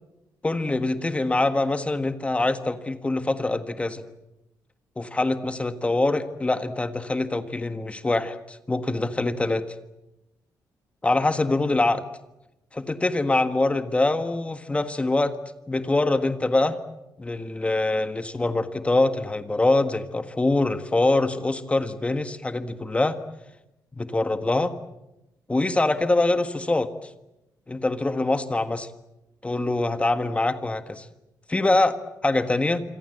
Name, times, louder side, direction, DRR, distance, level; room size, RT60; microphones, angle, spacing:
voice 1, 0.4-4.0 5.0-9.7 11.0-12.0 12.7-15.3 15.7-16.8 17.2-23.2 24.0-24.7 25.5-27.1 27.7-28.9 29.4-31.1 31.5-32.8, left 2 dB, 15° left, 9 dB, 1.5 m, -24 dB
27.0 x 26.0 x 8.0 m, 0.94 s
cardioid pair, 130°, 7 cm